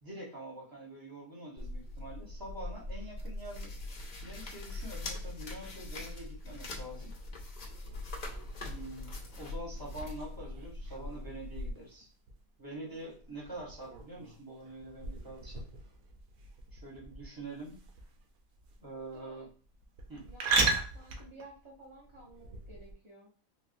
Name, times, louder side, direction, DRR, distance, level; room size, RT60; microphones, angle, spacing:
voice 1, 0.0-3.7 4.2-7.1 8.6-12.1 12.6-15.7 16.7-17.8 18.8-19.5 20.1-20.3, right 1 dB, 20° right, -3 dB, 0.8 m, -45 dB
sound 1, 1.6-11.7, left 2 dB, 55° left, 0.5 m, -42 dB
sound 2, 7.9-22.9, right 4 dB, 80° right, 1.1 m, -39 dB
voice 2, 18.9-19.4 20.2-23.3, right 2 dB, 45° right, -5 dB, 0.4 m, -54 dB
3.5 x 2.2 x 2.5 m, 0.40 s
omnidirectional pair, 1.5 m